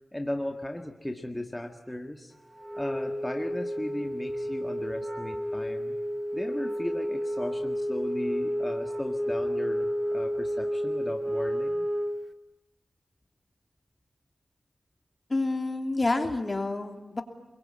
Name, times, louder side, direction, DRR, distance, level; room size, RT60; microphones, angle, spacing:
voice 1, 0.1-2.3 2.7-6.0 6.3-11.9, left 1 dB, 10° left, 4 dB, 1.9 m, -36 dB
Wind instrument woodwind instrument, 2.6-12.3, equal, 25° right, 1.6 m, -31 dB
voice 2, 15.3-17.2, left 2 dB, 35° left, 5 dB, 3.0 m, -28 dB
29.0 x 22.5 x 8.9 m, 1.1 s
wide cardioid pair, 80°, 0 cm